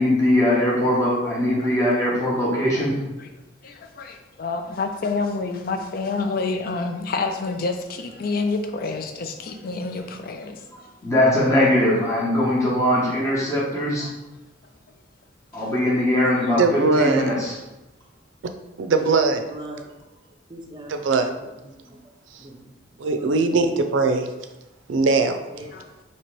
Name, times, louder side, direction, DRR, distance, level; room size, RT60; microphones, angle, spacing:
voice 1, 0.0-3.0 11.0-14.1 15.5-17.5, left 1 dB, 15° left, -7 dB, 0.9 m, -21 dB
voice 2, 3.6-10.7 14.0-14.1 15.5-15.7 25.7-25.9, left 3 dB, 50° left, 5 dB, 0.4 m, -28 dB
voice 3, 16.6-17.3 18.8-19.4 20.9-21.3 22.3-22.4 23.0-24.3 24.9-25.4, right 3 dB, 80° right, 7 dB, 0.4 m, -20 dB
voice 4, 18.9-19.9 20.5-21.3 21.6-22.0 22.4-22.7 23.0-23.4 25.5-25.7, right 1 dB, 25° right, 1 dB, 0.6 m, -40 dB
3.0 x 2.9 x 4.5 m, 1.0 s
head